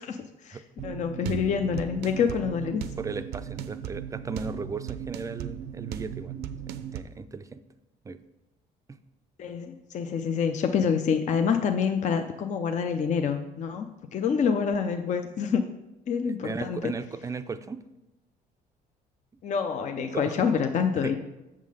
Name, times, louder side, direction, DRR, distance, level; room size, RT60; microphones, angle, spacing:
voice 1, 0.0-2.8 9.4-15.6 16.1-16.9 19.4-21.2, left 6 dB, 45° left, 7 dB, 0.5 m, -27 dB
sound 1, 0.8-7.0, right 9 dB, 75° right, 0.5 m, -37 dB
voice 2, 3.0-6.4 6.7-7.6 8.0-8.2 16.2-17.8 20.0-20.4 21.0-21.2, right 4 dB, 20° right, 11 dB, 0.4 m, -36 dB
7.4 x 3.7 x 6.3 m, 0.99 s
cardioid pair, 110°, 17 cm